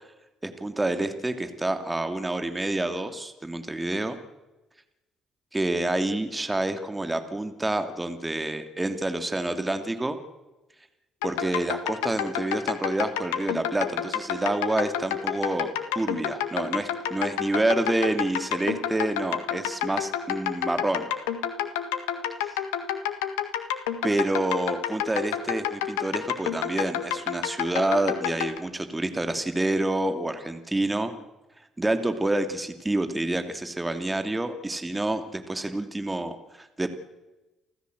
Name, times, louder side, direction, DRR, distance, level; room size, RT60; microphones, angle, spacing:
voice 1, 0.4-4.2 5.5-10.2 11.2-21.1 22.4-22.6 24.0-31.1 31.8-36.9, right 2 dB, 15° right, 8 dB, 2.7 m, -28 dB
sound 1, 11.2-28.6, left 10 dB, 80° left, 1.7 m, -29 dB
29.5 x 14.0 x 8.0 m, 1.0 s
hypercardioid pair, 50°, 0 cm